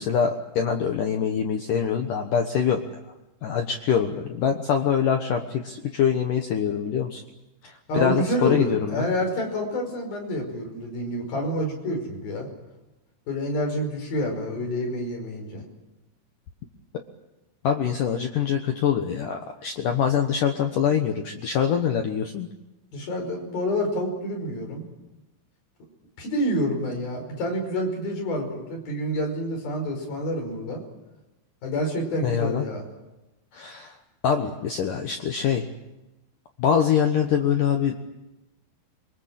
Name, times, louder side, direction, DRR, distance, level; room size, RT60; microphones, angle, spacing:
voice 1, 0.0-2.8 3.4-7.2 7.6-9.1 17.6-22.5 32.2-32.7 33.5-34.0 34.2-35.7 36.6-38.0, left 8 dB, 75° left, 4 dB, 1.9 m, -24 dB
voice 2, 7.9-12.5 13.3-15.7 22.9-24.9 26.2-30.8 31.6-32.8, equal, 50° left, 2 dB, 7.0 m, -28 dB
27.5 x 24.0 x 7.6 m, 1.0 s
omnidirectional pair, 5.6 m